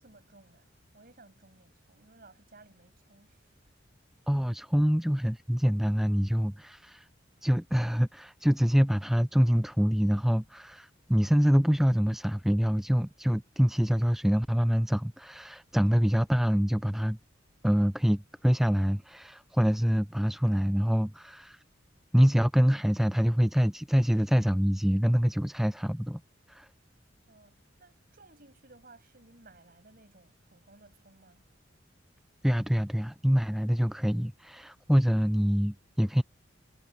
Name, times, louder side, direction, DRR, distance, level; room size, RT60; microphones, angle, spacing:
voice 1, 0.0-3.8 27.3-31.4, right 2 dB, 50° right, 6.8 m, -58 dB
voice 2, 4.3-7.1 7.4-17.2 17.6-21.6 22.1-26.2 26.5-26.7 32.4-36.2, equal, ahead, 0.3 m, -25 dB
head